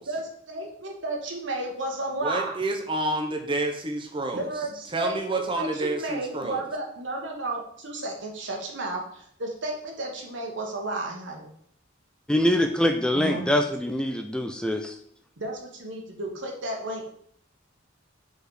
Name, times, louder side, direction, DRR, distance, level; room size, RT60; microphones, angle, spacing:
voice 1, 0.1-2.5 4.3-11.5 13.1-13.4 15.4-17.1, right 2 dB, 70° right, 0 dB, 1.5 m, -33 dB
voice 2, 2.2-4.5 4.9-6.7, right 2 dB, 25° right, 3 dB, 0.7 m, -29 dB
voice 3, 12.3-15.0, left 1 dB, 5° left, 5 dB, 0.4 m, -24 dB
4.7 x 4.4 x 4.9 m, 0.63 s
head